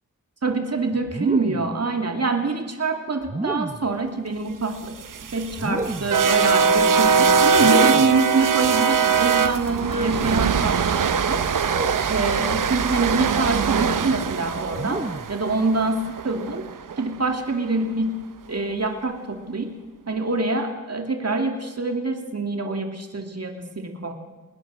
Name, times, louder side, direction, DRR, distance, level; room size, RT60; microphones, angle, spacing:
voice 1, 0.4-4.9 5.3-16.7 17.0-18.2 18.5-19.7 20.1-24.1, right 3 dB, 50° right, 4 dB, 2.5 m, -25 dB
sound 1, 1.1-1.8 3.2-3.9 5.5-6.3 7.5-8.2 9.8-10.2 11.6-12.1 13.2-13.6 14.7-15.4, right 2 dB, 20° right, 0.9 m, -31 dB
sound 2, 4.8-17.0, right 6 dB, 75° right, 0.8 m, -22 dB
20.5 x 20.0 x 6.3 m, 1.3 s
wide cardioid pair, 65°, 32 cm